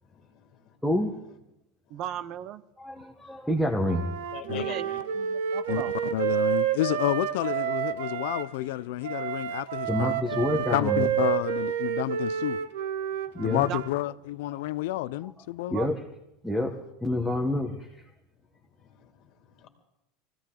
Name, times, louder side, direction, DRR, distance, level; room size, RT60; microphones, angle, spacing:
voice 1, 0.0-0.8 1.9-2.0 4.3-5.0 13.2-13.6 16.4-16.9 17.4-17.5 18.3-19.7, left 10 dB, 40° left, 2.1 m, -47 dB
voice 2, 0.8-1.1 2.8-4.1 9.9-11.1 13.3-13.7 14.5-14.6 15.7-16.0 16.4-16.7 17.0-18.0, left 1 dB, ahead, 1.1 m, -28 dB
voice 3, 1.9-2.6 4.4-4.9 5.1-5.9 13.6-13.8 15.7-15.9, right 11 dB, 40° right, 0.7 m, -36 dB
Wind instrument woodwind instrument, 3.8-8.5 9.0-13.9, right 10 dB, 90° right, 1.1 m, -29 dB
voice 4, 6.1-10.4 10.7-12.6 13.4-15.8, left 16 dB, 70° left, 0.5 m, -30 dB
24.0 x 15.5 x 3.8 m
supercardioid pair, 165°, 0 cm